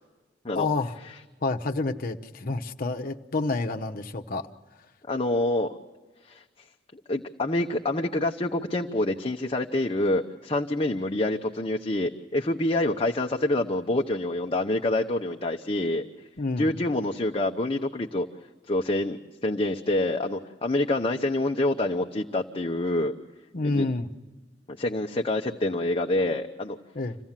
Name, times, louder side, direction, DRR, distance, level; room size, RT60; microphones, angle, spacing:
voice 1, 0.5-0.9 1.4-4.5 16.4-16.8 23.5-24.1 26.9-27.2, left 3 dB, 50° left, 5 dB, 1.0 m, -29 dB
voice 2, 5.1-5.7 6.3-6.4 7.1-16.1 16.6-18.3 18.7-23.1 23.6-23.9 24.8-26.8, left 1 dB, 30° left, 2 dB, 0.8 m, -26 dB
26.5 x 16.5 x 7.4 m, 1.3 s
head